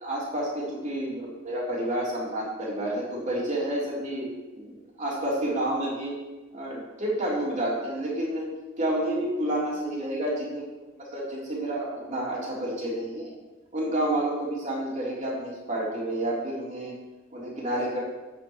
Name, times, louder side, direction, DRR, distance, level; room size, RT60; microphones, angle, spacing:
voice 1, 0.0-4.3 4.5-6.1 6.5-8.5 8.8-10.7 11.1-13.3 13.7-16.9 17.3-18.0, right 1 dB, 35° right, -5 dB, 3.6 m, -29 dB
9.1 x 7.7 x 6.4 m, 1.2 s
head